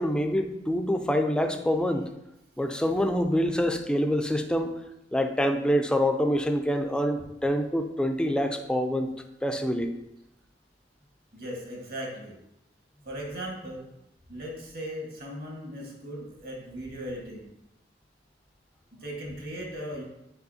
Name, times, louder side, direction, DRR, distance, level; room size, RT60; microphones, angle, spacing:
voice 1, 0.0-2.1 2.6-4.7 5.1-9.1 9.4-9.9, equal, 5° left, 5 dB, 0.4 m, -26 dB
voice 2, 11.3-12.4 13.0-13.9 14.3-17.5 18.9-20.0, equal, 55° right, -1 dB, 1.5 m, -38 dB
8.0 x 4.9 x 2.7 m, 0.85 s
head